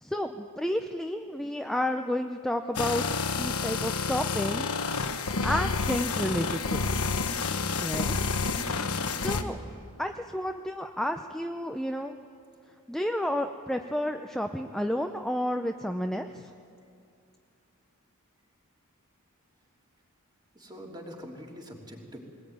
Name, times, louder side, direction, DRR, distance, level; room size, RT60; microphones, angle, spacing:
voice 1, 0.0-4.7 5.4-6.9 7.8-8.3 9.2-9.6 10.0-12.2 12.9-16.5, left 1 dB, ahead, 5 dB, 0.6 m, -31 dB
Soul Smelter Bass, 2.8-9.4, left 4 dB, 80° left, 1.3 m, -29 dB
voice 2, 20.5-22.2, equal, 20° right, -1 dB, 3.3 m, -44 dB
21.5 x 19.5 x 9.4 m, 2.4 s
head